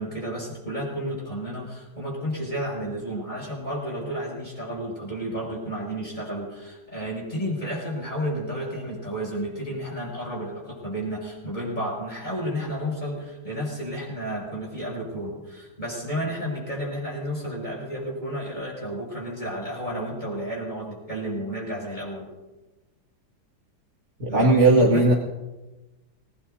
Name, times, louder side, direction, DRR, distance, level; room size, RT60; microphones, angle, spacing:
voice 1, 0.0-22.3 24.3-25.0, equal, 25° left, -3 dB, 7.3 m, -32 dB
voice 2, 24.2-25.1, right 2 dB, 45° right, -3 dB, 2.3 m, -17 dB
28.0 x 18.5 x 2.8 m, 1.1 s
omnidirectional pair, 1.8 m